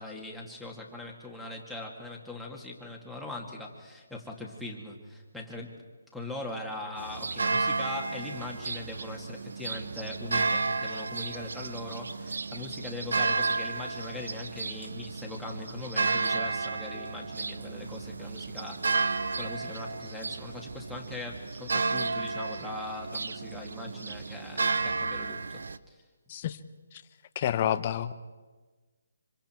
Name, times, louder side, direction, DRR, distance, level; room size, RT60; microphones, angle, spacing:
voice 1, 0.0-5.8 6.1-25.6 25.9-26.0, left 2 dB, ahead, 0 dB, 2.3 m, -40 dB
sound 1, 7.0-25.8, right 4 dB, 75° right, 0.7 m, -32 dB
voice 2, 27.3-28.1, left 10 dB, 35° left, 11 dB, 0.9 m, -29 dB
26.0 x 25.5 x 4.6 m, 1.3 s
hypercardioid pair, 160°, 0 cm